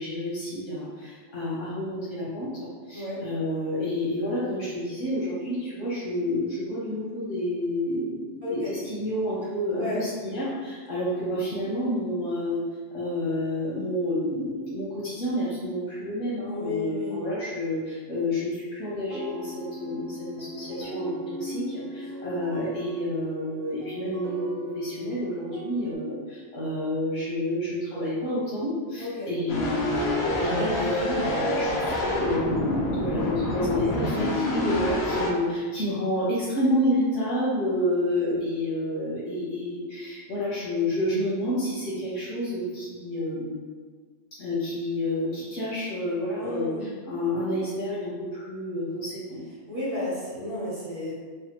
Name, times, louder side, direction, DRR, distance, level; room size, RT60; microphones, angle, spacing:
voice 1, 0.0-12.6 12.9-43.6 44.4-49.4, left 1 dB, 90° left, -9 dB, 1.2 m, -29 dB
voice 2, 8.4-8.7 9.7-10.1 16.4-17.2 29.0-29.3 33.7-34.3 38.3-38.4 46.4-46.9 49.7-51.1, left 2 dB, 35° right, -8 dB, 0.9 m, -33 dB
sound 1, 19.1-26.0, right 2 dB, 60° right, 0.6 m, -38 dB
sound 2, 29.5-35.3, left 1 dB, 65° left, 0.9 m, -27 dB
3.2 x 2.2 x 2.9 m, 1.5 s
omnidirectional pair, 1.2 m